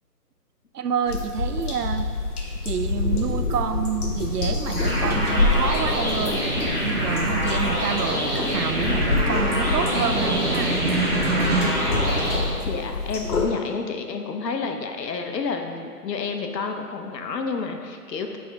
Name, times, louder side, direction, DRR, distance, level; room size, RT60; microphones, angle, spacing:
voice 1, 0.7-2.1 2.6-6.4 6.8-10.8, right 7 dB, 75° right, 10 dB, 0.5 m, -28 dB
sound 1, 1.1-13.5, left 3 dB, 65° left, 1.2 m, -27 dB
sound 2, 4.7-12.4, equal, ahead, 1.2 m, -25 dB
Snare drum, 7.4-12.1, right 2 dB, 40° right, 0.7 m, -29 dB
voice 2, 12.6-18.4, left 4 dB, 85° left, 4 dB, 0.9 m, -30 dB
8.6 x 3.6 x 3.5 m, 2.1 s
hypercardioid pair, 180°, 48 cm